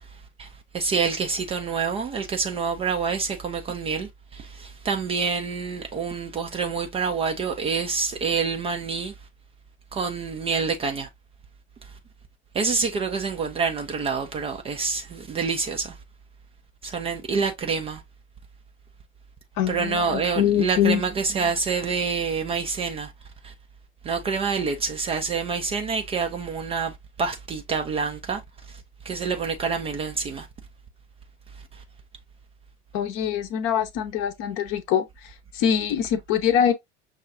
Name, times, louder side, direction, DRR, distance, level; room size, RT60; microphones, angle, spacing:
voice 1, 0.7-4.1 4.8-9.1 9.9-11.1 12.6-15.9 16.8-18.0 19.7-21.1 21.3-23.1 24.1-26.9 27.2-28.4 29.1-30.4, right 5 dB, 20° right, 0.4 m, -27 dB
voice 2, 19.6-21.0 32.9-36.7, left 9 dB, 40° left, 0.7 m, -24 dB
5.9 x 2.3 x 2.5 m
figure-of-eight pair, 80°, 33 cm